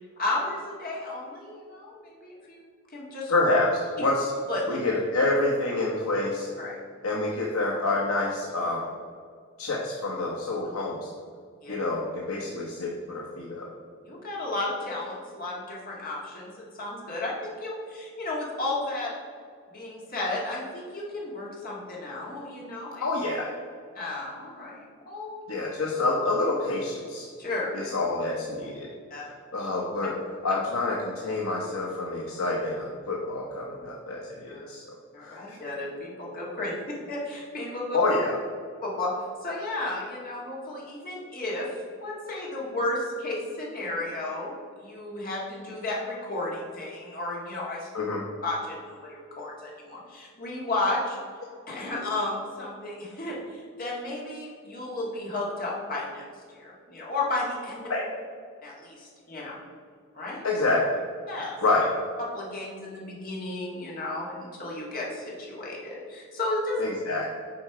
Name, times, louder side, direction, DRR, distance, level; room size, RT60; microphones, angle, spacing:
voice 1, 0.2-2.6 2.9-3.3 4.5-4.8 6.6-6.8 11.6-11.8 14.1-19.1 19.7-23.0 24.0-25.3 27.4-27.7 29.1-29.3 34.5-34.7 35.1-38.0 38.8-39.1 39.4-41.7 42.0-47.9 48.4-51.2 51.7-56.3 56.5-57.9 58.6-59.6 60.1-60.5 61.3-61.6 62.2-66.8, left 2 dB, 45° left, -4 dB, 1.8 m, -33 dB
voice 2, 3.3-4.3 4.7-6.5 7.0-8.9 9.6-11.1 11.7-13.7 23.0-23.5 25.5-27.3 27.7-28.9 29.5-30.1 30.4-35.6 37.9-38.4 47.9-48.2 57.9-58.1 60.4-61.0 61.6-61.9 66.8-67.2, left 2 dB, 75° left, -2 dB, 0.8 m, -27 dB
7.8 x 4.5 x 4.9 m, 2.1 s
head